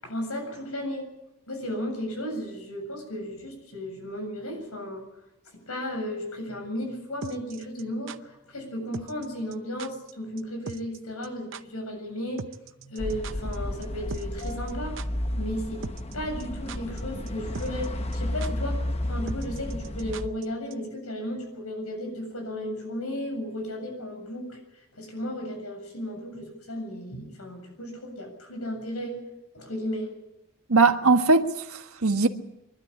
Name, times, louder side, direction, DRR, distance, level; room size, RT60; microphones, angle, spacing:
voice 1, 0.0-1.0 1.5-5.0 5.7-12.4 12.8-14.9 15.3-15.8 16.1-18.8 19.1-24.6 25.0-29.2 29.5-30.1, equal, 85° left, 7.7 m, -34 dB
sound 1, 7.2-8.2 8.9-9.3 9.5-9.6 9.8-10.1 10.4-10.5 10.7-11.0 11.2-11.3 11.5-11.6 12.4-13.6 13.8-13.9 14.1-14.7 15.0-15.1 15.8-16.1 16.4-17.0 17.3-17.4 17.5-17.9 18.1-18.2 18.4-18.5 19.3-20.4 20.7-20.8, right 4 dB, 60° right, 0.7 m, -39 dB
sound 2, 13.0-20.3, left 1 dB, 30° left, 1.0 m, -32 dB
voice 2, 30.7-32.3, right 3 dB, 80° right, 1.5 m, -20 dB
24.0 x 12.5 x 9.9 m
head